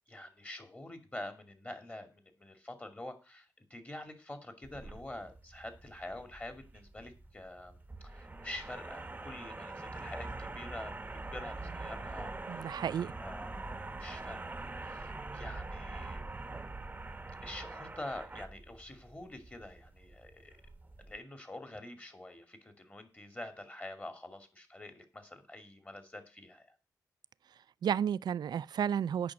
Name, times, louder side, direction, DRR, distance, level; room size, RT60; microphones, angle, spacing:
voice 1, 0.1-7.8 8.0-11.0 11.3-12.7 13.2-16.3 17.4-20.6 21.0-26.7, left 1 dB, 20° left, 2.4 m, -46 dB
sound 1, 4.6-21.2, right 2 dB, 20° right, 1.0 m, -44 dB
voice 2, 12.5-13.1 27.8-29.3, right 8 dB, 65° right, 0.4 m, -32 dB
8.6 x 5.9 x 7.4 m
cardioid pair, 85°, 8 cm